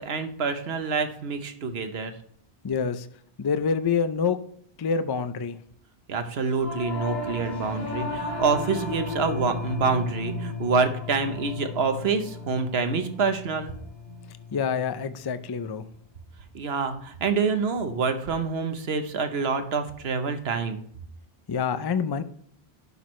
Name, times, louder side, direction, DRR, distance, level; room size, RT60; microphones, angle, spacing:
voice 1, 0.0-2.1 6.1-13.7 16.5-20.8, right 5 dB, 75° right, 8 dB, 1.2 m, -27 dB
voice 2, 2.6-3.1 3.4-4.4 4.8-5.6 14.5-15.9 21.5-22.2, left 6 dB, 40° left, 11 dB, 0.3 m, -26 dB
Singing / Musical instrument, 6.5-16.0, left 3 dB, 70° left, 2.2 m, -35 dB
11.0 x 6.1 x 3.1 m, 0.63 s
omnidirectional pair, 1.1 m